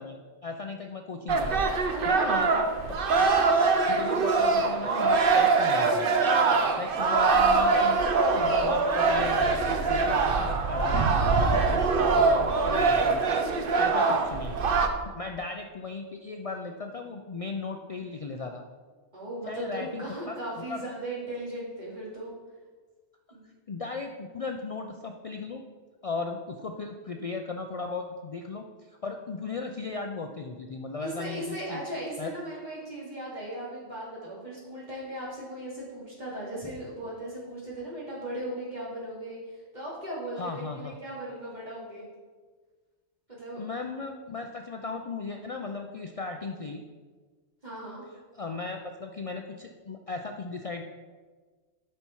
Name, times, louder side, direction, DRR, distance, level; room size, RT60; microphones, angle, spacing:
voice 1, 0.0-1.6 2.0-2.6 3.2-3.5 3.9-6.0 6.8-8.0 8.3-13.2 13.5-14.6 15.1-18.6 19.5-20.3 20.7-20.8 23.7-25.6 26.0-31.8 32.2-32.3 40.4-40.9 43.6-46.8 48.3-50.8, left 4 dB, 65° left, 4 dB, 0.3 m, -36 dB
sound 1, 1.3-14.9, right 4 dB, 50° right, 0.9 m, -23 dB
voice 2, 1.9-2.6 4.0-4.3 19.1-22.3 23.3-23.5 31.0-42.1 43.3-43.6 47.6-48.0, right 1 dB, 35° right, -6 dB, 3.1 m, -37 dB
11.5 x 5.6 x 4.6 m, 1.4 s
omnidirectional pair, 1.3 m